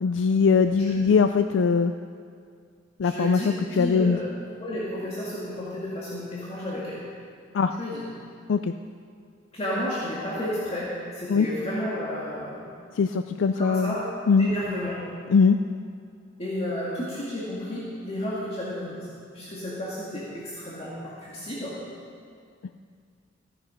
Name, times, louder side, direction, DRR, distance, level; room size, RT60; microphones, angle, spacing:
voice 1, 0.0-1.9 3.0-4.2 7.5-7.7 8.5-8.7 11.3-11.5 13.0-14.0 14.3-14.5 15.3-15.6, left 5 dB, 75° left, 8 dB, 0.4 m, -21 dB
voice 2, 3.0-7.0 7.8-8.0 9.5-12.6 13.5-14.1 14.4-15.0 16.4-19.1 19.3-21.7, left 1 dB, 35° left, -7 dB, 2.0 m, -32 dB
15.0 x 9.8 x 5.1 m, 2.2 s
head